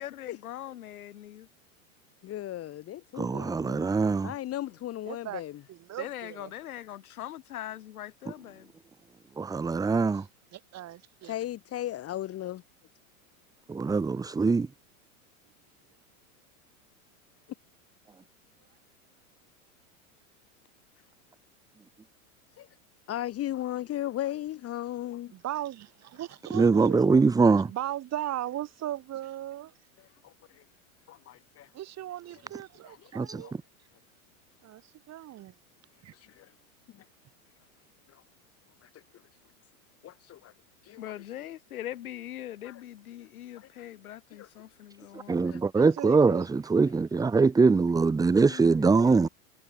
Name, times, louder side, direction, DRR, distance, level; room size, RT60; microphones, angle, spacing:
voice 1, 0.0-1.5 6.0-8.7 41.0-45.6 48.5-49.3, left 12 dB, 80° left, 3.6 m, -42 dB
voice 2, 2.2-3.9 4.2-5.6 11.2-12.6 22.6-22.7 23.1-25.3 30.2-30.3 31.1-31.7 32.9-33.1 33.4-33.5 36.4-36.5 40.0-40.5 40.9-41.1 42.6-42.8 43.5-43.7 44.3-44.5 45.5-45.9, left 13 dB, 35° left, 1.7 m, -36 dB
voice 3, 3.2-4.3 9.4-10.2 13.7-14.7 26.5-27.7 33.1-33.4 45.1-49.3, right 4 dB, 10° right, 0.8 m, -23 dB
voice 4, 5.1-5.4 5.7-6.5 10.5-11.3 25.3-27.0 27.7-29.7 31.7-33.5 34.6-34.8 35.1-35.5 36.0-36.1 45.7-46.5, right 13 dB, 35° right, 6.0 m, -37 dB
hypercardioid pair, 105°, 43 cm